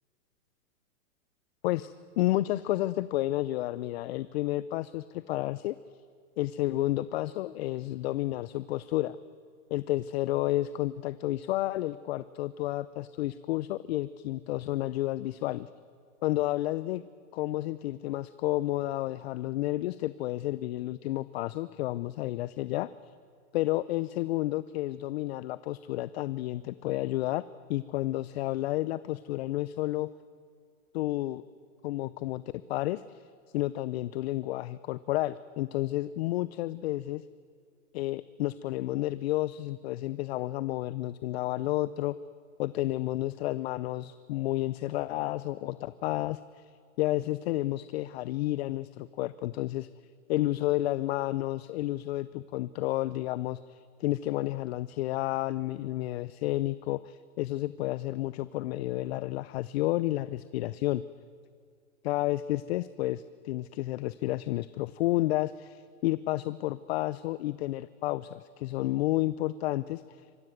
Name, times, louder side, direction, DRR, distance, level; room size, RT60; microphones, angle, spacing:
voice 1, 1.6-5.8 6.4-9.2 9.7-15.7 16.2-17.0 17.3-22.9 23.5-27.4 27.7-30.1 30.9-31.4 31.8-32.4 32.7-33.2 33.5-37.2 37.9-42.2 42.6-46.7 47.0-49.9 50.3-61.0 62.0-70.2, left 16 dB, 50° left, 17 dB, 0.6 m, -31 dB
25.0 x 19.0 x 9.4 m, 2.2 s
hypercardioid pair, 145°, 41 cm